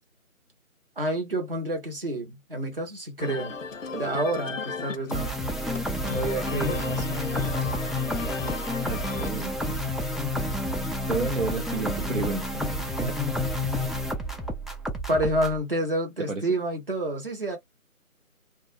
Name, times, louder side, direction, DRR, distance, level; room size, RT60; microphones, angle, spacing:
voice 1, 1.0-3.6 3.9-5.4 6.1-7.3 15.1-17.6, right 1 dB, 40° right, 0.9 m, -29 dB
sound 1, 3.2-12.6, left 5 dB, 60° left, 0.5 m, -38 dB
sound 2, 5.1-15.6, left 1 dB, ahead, 0.3 m, -29 dB
voice 2, 8.9-9.8 11.1-13.3 16.3-16.4, right 4 dB, 60° right, 0.6 m, -32 dB
2.2 x 2.1 x 3.1 m
figure-of-eight pair, 160°, 43 cm